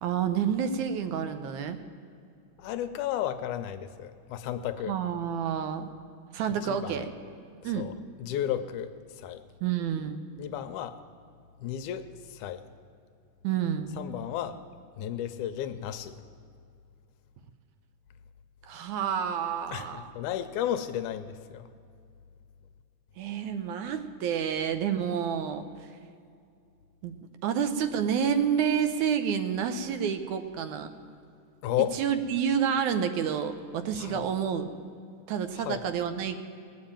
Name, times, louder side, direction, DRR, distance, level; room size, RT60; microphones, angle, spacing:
voice 1, 0.0-1.8 4.9-5.9 6.3-7.1 7.6-7.9 9.6-10.2 13.4-13.9 18.7-20.1 23.2-25.6 27.0-27.1 27.4-30.9 31.8-34.7 35.3-36.4, right 8 dB, 75° right, 9 dB, 2.1 m, -29 dB
voice 2, 2.6-5.0 6.6-7.0 7.6-7.9 8.2-8.9 9.2-9.4 10.4-11.0 11.6-12.6 14.0-14.6 15.0-16.2 19.7-21.7 31.6-31.9 34.0-34.2 35.6-35.8, left 11 dB, 80° left, 10 dB, 2.1 m, -33 dB
19.0 x 7.4 x 8.8 m, 2.4 s
omnidirectional pair, 3.7 m